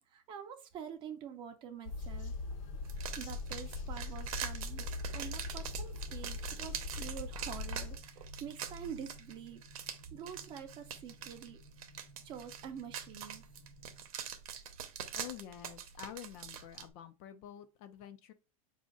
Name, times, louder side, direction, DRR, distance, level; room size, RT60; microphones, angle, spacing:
voice 1, 0.1-2.3 3.2-9.6 9.9-11.6 12.2-13.4, right 8 dB, 25° right, 0.6 m, -47 dB
sound 1, 1.8-8.0, left 3 dB, 65° left, 1.1 m, -41 dB
sound 2, 2.0-14.1, equal, 85° left, 1.1 m, -59 dB
sound 3, 2.8-16.9, right 8 dB, 80° right, 0.8 m, -44 dB
voice 2, 15.1-18.3, left 11 dB, 40° left, 0.4 m, -48 dB
4.9 x 2.5 x 3.7 m
supercardioid pair, 160°, 18 cm